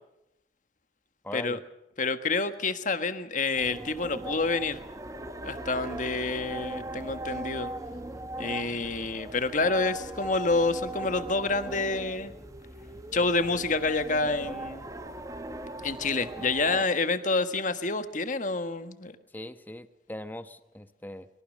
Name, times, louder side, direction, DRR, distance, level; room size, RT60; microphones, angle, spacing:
voice 1, 1.2-1.6 16.4-16.5 19.3-21.3, left 1 dB, 10° left, 10 dB, 1.1 m, -40 dB
voice 2, 2.0-4.8 5.4-7.7 8.4-12.3 13.1-14.9 15.8-19.1, left 3 dB, 45° left, 10 dB, 1.6 m, -28 dB
sound 1, 3.5-16.8, right 1 dB, 20° right, 1.3 m, -39 dB
24.0 x 22.5 x 6.5 m, 0.85 s
head